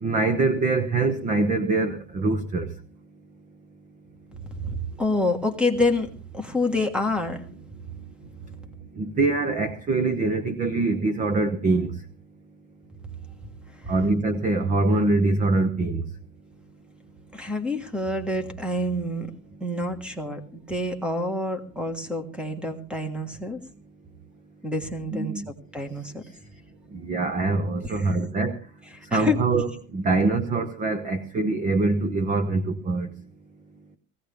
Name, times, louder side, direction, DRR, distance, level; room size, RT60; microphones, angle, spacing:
voice 1, 0.0-2.7 9.0-12.0 13.9-16.0 25.1-25.5 26.9-28.6 29.1-33.1, right 3 dB, 20° right, 11 dB, 0.8 m, -24 dB
voice 2, 4.4-7.4 13.8-13.9 17.3-19.3 19.6-23.6 24.6-26.2 27.8-28.1 28.9-29.4, left 2 dB, ahead, 8 dB, 1.5 m, -28 dB
19.0 x 16.5 x 3.4 m, 0.35 s
cardioid pair, 160°, 41 cm